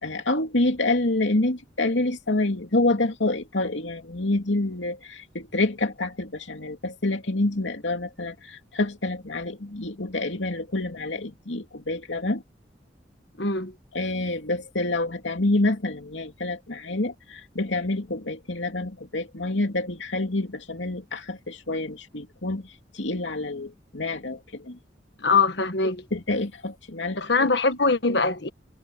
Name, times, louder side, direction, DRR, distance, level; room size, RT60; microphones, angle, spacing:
voice 1, 0.0-12.4 13.9-24.8 26.1-27.2, left 2 dB, 85° left, 2.7 m, -27 dB
voice 2, 13.4-13.7 25.2-26.0 27.2-28.5, left 4 dB, 70° left, 1.5 m, -22 dB
head